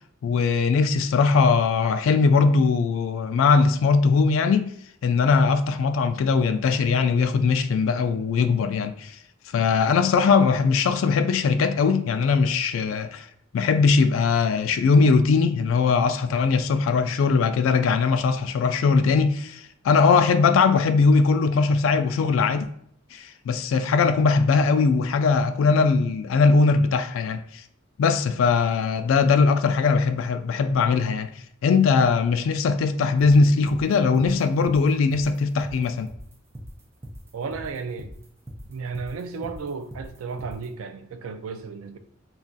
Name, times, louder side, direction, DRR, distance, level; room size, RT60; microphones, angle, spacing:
voice 1, 0.2-4.7 5.0-9.1 9.5-13.3 13.5-22.7 23.1-27.4 28.0-31.3 31.6-36.1, left 4 dB, 70° left, 0.3 m, -20 dB
sound 1, 33.2-40.7, equal, 10° right, 0.4 m, -40 dB
voice 2, 37.3-38.1 38.7-42.0, right 5 dB, 85° right, 0.4 m, -34 dB
2.3 x 2.3 x 3.8 m
head